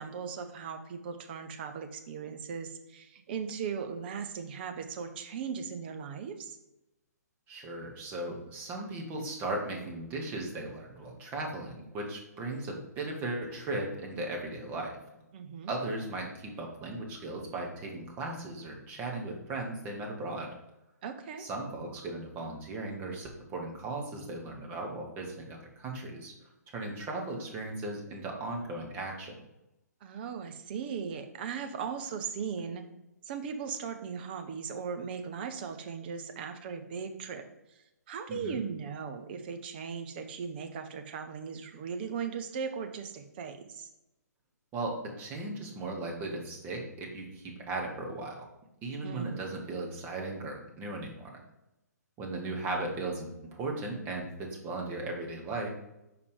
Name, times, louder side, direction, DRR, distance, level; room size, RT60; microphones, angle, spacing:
voice 1, 0.0-6.6 15.3-15.7 21.0-21.4 30.0-32.8 33.3-37.4 38.1-43.9 49.0-49.4, right 6 dB, 35° right, 7 dB, 0.7 m, -38 dB
voice 2, 7.5-14.9 15.7-20.5 21.4-26.3 26.7-29.3 38.3-38.6 44.7-48.5 48.8-51.3 52.2-55.7, right 2 dB, 20° right, 0 dB, 1.3 m, -37 dB
5.0 x 4.9 x 5.0 m, 0.92 s
figure-of-eight pair, 125°, 9 cm